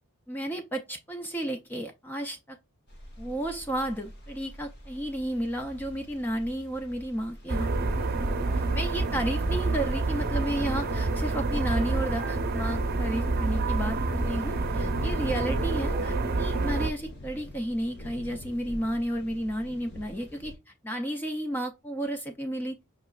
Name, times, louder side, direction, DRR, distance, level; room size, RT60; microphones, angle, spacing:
voice 1, 0.3-2.6 3.2-8.1 8.7-22.9, right 1 dB, 10° left, 0.4 m, -32 dB
sound 1, 2.9-20.6, left 1 dB, 50° left, 0.9 m, -43 dB
sound 2, 7.5-16.9, right 3 dB, 45° right, 0.6 m, -28 dB
5.5 x 3.0 x 2.3 m
head